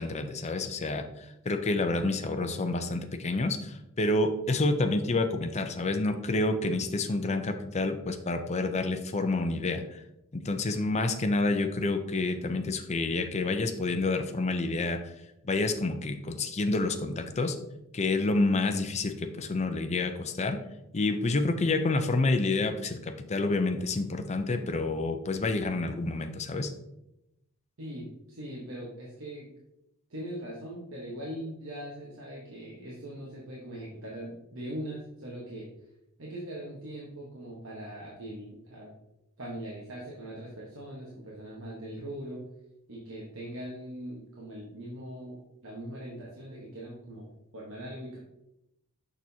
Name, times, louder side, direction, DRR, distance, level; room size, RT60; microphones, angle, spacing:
voice 1, 0.0-10.0 10.3-15.1 15.4-17.6 17.9-20.6 20.9-26.7, left 2 dB, 30° left, 6 dB, 0.5 m, -28 dB
voice 2, 27.8-29.5 30.1-35.7 36.2-38.9 39.4-42.5 42.9-48.2, right 1 dB, 65° right, -4 dB, 1.3 m, -41 dB
6.6 x 6.1 x 2.8 m, 0.87 s
head